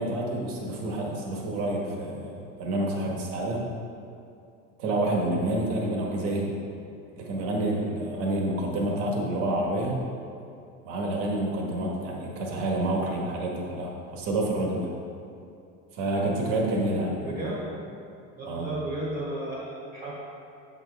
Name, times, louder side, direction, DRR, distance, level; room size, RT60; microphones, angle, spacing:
voice 1, 0.0-2.3 2.6-3.6 4.8-6.5 7.2-9.9 10.8-14.9 15.9-17.4 18.5-18.7, right 1 dB, 60° right, -1 dB, 1.6 m, -28 dB
voice 2, 17.2-17.7 18.4-20.1, right 1 dB, 25° right, -6 dB, 1.4 m, -33 dB
8.5 x 6.4 x 3.5 m, 2.6 s
cardioid pair, 175°, 31 cm